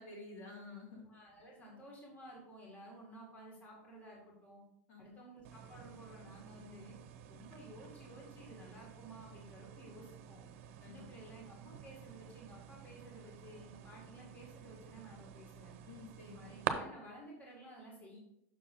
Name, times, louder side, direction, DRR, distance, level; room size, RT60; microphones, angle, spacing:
voice 1, 0.0-1.0 4.9-5.1 10.8-11.0 15.8-16.4, left 3 dB, 70° left, -2 dB, 2.7 m, -50 dB
voice 2, 1.1-4.6 5.0-7.0 7.3-10.5 10.9-15.8 16.3-18.2, right 1 dB, 20° left, -2 dB, 1.9 m, -54 dB
sound 1, 5.4-16.7, right 11 dB, 70° right, 0.7 m, -48 dB
6.2 x 4.7 x 5.3 m, 0.81 s
supercardioid pair, 155°, 7 cm